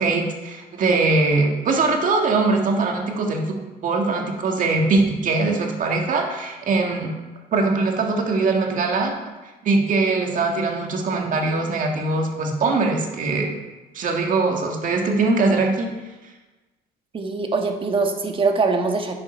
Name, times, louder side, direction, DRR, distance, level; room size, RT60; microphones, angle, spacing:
voice 1, 0.0-3.6 3.8-7.1 7.5-9.1 9.6-13.5 13.9-15.9, right 3 dB, 50° right, 2 dB, 1.9 m, -21 dB
voice 2, 17.1-19.1, right 4 dB, 30° right, 4 dB, 1.3 m, -22 dB
10.5 x 7.0 x 4.5 m, 1.2 s
cardioid pair, 110°, 17 cm